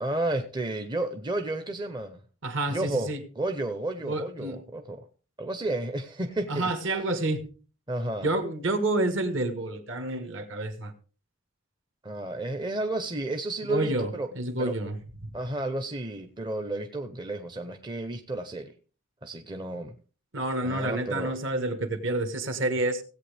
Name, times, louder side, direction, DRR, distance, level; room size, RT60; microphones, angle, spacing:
voice 1, 0.0-2.2 2.7-5.1 5.4-6.7 7.9-8.3 12.0-14.3 14.6-14.7 15.3-18.7 19.2-20.0 20.6-21.4, right 2 dB, 20° right, 0.6 m, -32 dB
voice 2, 2.4-3.2 4.0-4.6 6.5-7.4 8.2-10.9 13.7-15.0 15.2-15.3 20.3-23.0, right 2 dB, 60° right, 1.6 m, -29 dB
17.0 x 8.3 x 3.4 m
head